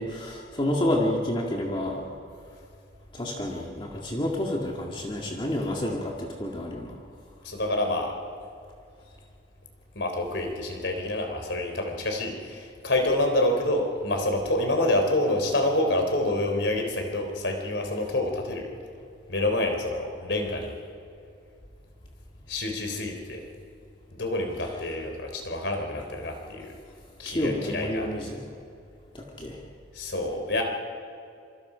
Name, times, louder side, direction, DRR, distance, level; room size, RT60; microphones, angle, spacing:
voice 1, 0.0-2.0 3.1-7.0 27.3-28.4 29.1-29.6, left 1 dB, 25° left, -2 dB, 2.0 m, -29 dB
voice 2, 7.4-8.1 10.0-18.7 19.3-20.7 22.5-23.4 24.2-26.7 27.2-28.3 30.0-30.6, left 1 dB, 70° left, 3 dB, 3.6 m, -27 dB
26.0 x 25.0 x 5.1 m, 2.4 s
head